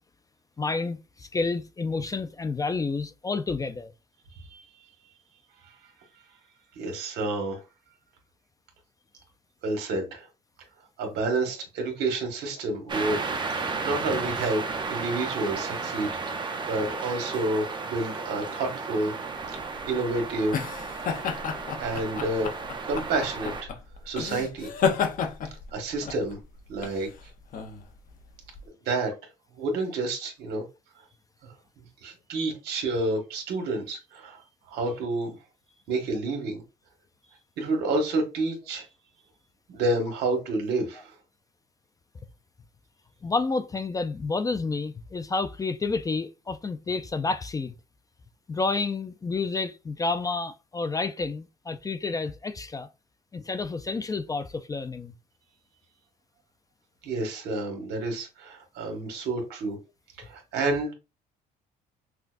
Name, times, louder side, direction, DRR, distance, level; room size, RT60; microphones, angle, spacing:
voice 1, 0.6-3.9 43.2-47.7 48.5-52.9 53.3-55.1, left 3 dB, 20° left, 0.4 m, -30 dB
voice 2, 6.7-7.6 9.6-10.2 11.0-13.3 13.8-14.6 14.9-19.1 19.5-19.6 19.9-20.7 21.8-22.5 22.8-23.7 24.0-24.7 25.7-26.4 26.7-27.1 28.8-29.1 29.5-30.6 32.0-34.4 34.7-35.3 35.9-36.6 37.6-38.8 39.7-41.1 57.0-59.8 60.2-60.9, right 2 dB, 75° right, 1.6 m, -29 dB
sound 1, 12.9-23.6, right 4 dB, 25° right, 0.7 m, -33 dB
sound 2, 19.5-28.7, left 6 dB, 55° left, 0.7 m, -32 dB
5.8 x 2.2 x 2.5 m
cardioid pair, 110°, 17 cm